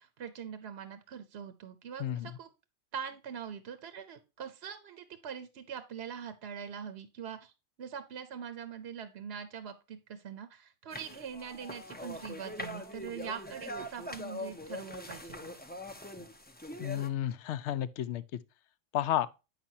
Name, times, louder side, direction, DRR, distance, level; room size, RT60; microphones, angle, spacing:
voice 1, 0.0-2.5 2.9-7.5 7.8-15.5, right 7 dB, 60° right, 0.9 m, -43 dB
voice 2, 2.0-2.4 16.8-18.2 18.9-19.3, left 11 dB, 70° left, 0.8 m, -32 dB
sound 1, 10.9-17.1, left 1 dB, 10° left, 0.4 m, -42 dB
8.4 x 5.9 x 2.7 m
omnidirectional pair, 1.3 m